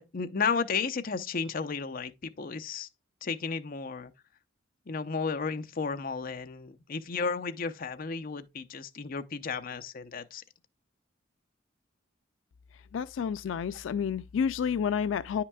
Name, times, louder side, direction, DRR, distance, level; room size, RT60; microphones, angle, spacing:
voice 1, 0.0-2.9 3.2-4.1 4.9-10.4, left 5 dB, 50° left, 0.6 m, -33 dB
voice 2, 12.9-15.4, left 7 dB, 90° left, 0.3 m, -30 dB
9.6 x 5.8 x 2.3 m
head